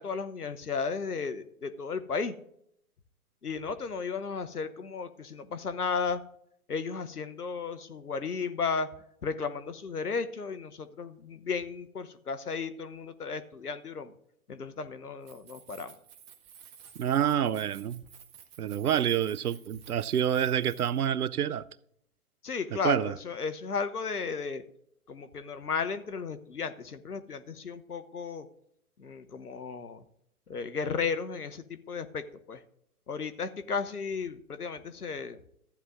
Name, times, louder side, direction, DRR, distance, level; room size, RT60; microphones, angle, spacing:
voice 1, 0.0-2.3 3.4-6.2 6.7-8.9 9.2-14.1 14.5-16.0 22.4-24.6 25.1-28.5 29.0-30.0 30.5-32.6 33.1-35.4, left 5 dB, 85° left, 0.9 m, -34 dB
Keys jangling, 15.1-21.3, right 8 dB, 20° right, 0.7 m, -53 dB
voice 2, 17.0-18.0 18.6-21.6 22.7-23.2, right 9 dB, 80° right, 0.6 m, -27 dB
14.5 x 9.0 x 2.5 m
figure-of-eight pair, 120°, 44 cm